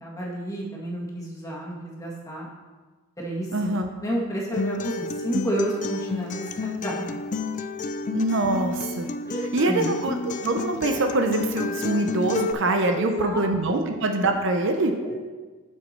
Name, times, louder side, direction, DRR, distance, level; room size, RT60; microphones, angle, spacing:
voice 1, 0.0-2.5 3.2-3.7 4.0-7.3 9.3-9.9 12.9-13.8 15.0-15.2, right 1 dB, 15° left, -4 dB, 1.8 m, -31 dB
voice 2, 3.5-3.9 8.1-9.1 9.5-14.9, right 2 dB, 60° right, 5 dB, 0.7 m, -24 dB
Acoustic guitar, 4.5-12.5, left 3 dB, 35° left, 0.4 m, -30 dB
7.2 x 6.9 x 4.4 m, 1.3 s
head